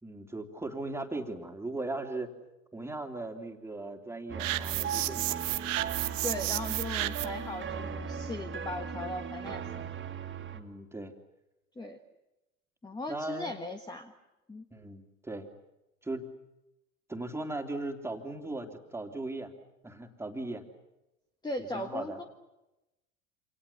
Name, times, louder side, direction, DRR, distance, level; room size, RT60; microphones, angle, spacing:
voice 1, 0.0-2.3 2.7-5.4 10.5-11.1 13.1-13.6 14.7-15.5 16.0-16.3 17.1-19.5 19.8-20.6 21.6-22.2, right 2 dB, 5° right, 4 dB, 3.3 m, -38 dB
sound 1, 4.3-10.6, right 6 dB, 25° right, 3.0 m, -37 dB
sound 2, 4.4-7.5, right 16 dB, 65° right, 1.2 m, -32 dB
voice 2, 6.2-9.8 11.8-12.0 12.8-14.1 14.5-14.7 21.4-22.2, left 2 dB, 10° left, 6 dB, 1.7 m, -38 dB
28.5 x 27.5 x 7.2 m, 0.96 s
figure-of-eight pair, 80°, 42 cm